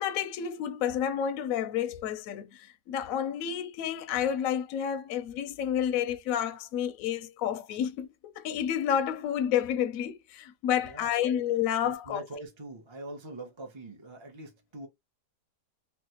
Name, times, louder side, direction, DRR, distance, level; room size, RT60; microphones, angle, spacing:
voice 1, 0.0-12.2, left 9 dB, 70° left, 0.9 m, -30 dB
voice 2, 10.8-11.2 11.8-14.9, right 2 dB, 30° right, 0.5 m, -43 dB
3.2 x 2.4 x 2.8 m
omnidirectional pair, 1.7 m